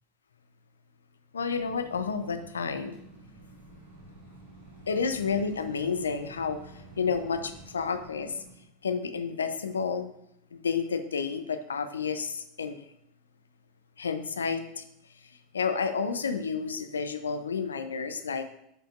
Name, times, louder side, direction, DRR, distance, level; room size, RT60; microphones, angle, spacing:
voice 1, 1.3-3.0 4.9-8.4 8.8-10.1 10.5-12.8 14.0-14.8 15.5-18.5, left 5 dB, 80° left, 9 dB, 0.6 m, -30 dB
sound 1, 1.5-8.5, right 2 dB, 80° right, 2.2 m, -50 dB
11.0 x 5.2 x 2.5 m, 0.75 s
figure-of-eight pair, 85°, 0 cm